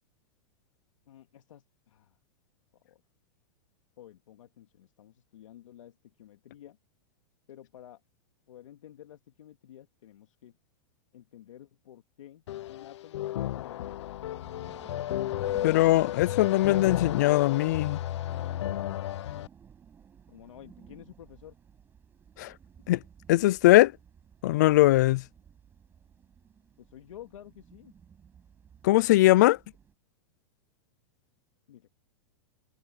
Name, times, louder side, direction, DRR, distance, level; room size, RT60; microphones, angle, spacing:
voice 1, 1.1-2.2 2.8-3.0 4.0-6.8 7.5-8.0 8.5-10.5 11.1-12.4 12.7-14.0 20.3-21.5 26.8-27.9 31.7-31.9, left 11 dB, 85° left, 2.3 m, -51 dB
sound 1, 12.5-19.5, left 13 dB, 65° left, 0.7 m, -33 dB
sound 2, 14.3-29.9, right 7 dB, 15° right, 6.9 m, -55 dB
voice 2, 15.6-18.0 22.4-22.5 22.9-23.0 23.3-23.9 24.4-25.2 28.8-29.6, left 17 dB, 35° left, 0.3 m, -21 dB
supercardioid pair, 175°, 16 cm